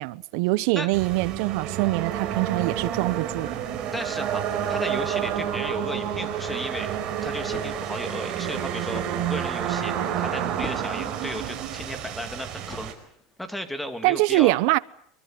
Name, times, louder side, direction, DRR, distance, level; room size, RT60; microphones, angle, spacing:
voice 1, 0.0-3.6 14.0-14.8, right 21 dB, 65° right, 0.9 m, -23 dB
sound 1, 0.9-12.9, right 9 dB, 40° right, 4.8 m, -29 dB
sound 2, 2.0-12.0, right 13 dB, 85° right, 4.8 m, -45 dB
voice 2, 3.9-6.9 7.2-12.9 13.4-14.5, equal, 5° left, 2.6 m, -34 dB
sound 3, 7.4-13.5, left 3 dB, 20° left, 3.9 m, -45 dB
25.0 x 23.5 x 7.7 m
supercardioid pair, 145°, 2 cm